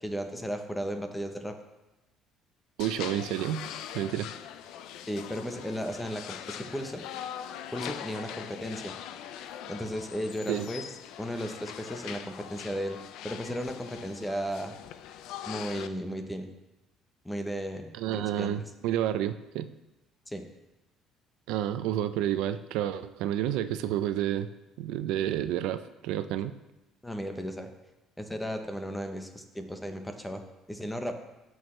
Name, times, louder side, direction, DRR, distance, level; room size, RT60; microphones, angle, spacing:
voice 1, 0.0-1.5 5.1-7.0 7.7-9.0 9.7-10.8 11.2-13.0 13.2-14.7 15.5-16.5 17.2-18.5 20.3-20.4 27.0-27.7 28.2-31.1, equal, 5° left, 6 dB, 0.8 m, -35 dB
sound 1, 2.8-15.9, left 10 dB, 70° left, 0.5 m, -42 dB
voice 2, 2.8-3.7 3.9-4.3 10.5-10.7 18.0-19.7 21.5-24.5 24.8-26.5, right 11 dB, 85° right, 11 dB, 0.4 m, -30 dB
15.0 x 6.3 x 3.2 m, 1.0 s
cardioid pair, 160°, 0 cm